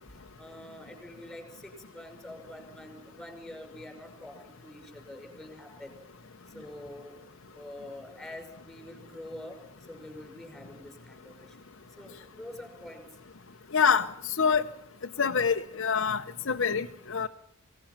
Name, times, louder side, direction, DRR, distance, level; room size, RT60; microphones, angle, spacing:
voice 1, 0.1-6.0 6.5-7.2 7.5-9.6 9.9-11.6 12.0-13.2, left 1 dB, ahead, 4 dB, 5.6 m, -46 dB
voice 2, 13.7-14.6 15.2-17.3, left 6 dB, 60° left, 4 dB, 0.8 m, -26 dB
27.0 x 18.0 x 5.9 m, 0.72 s
head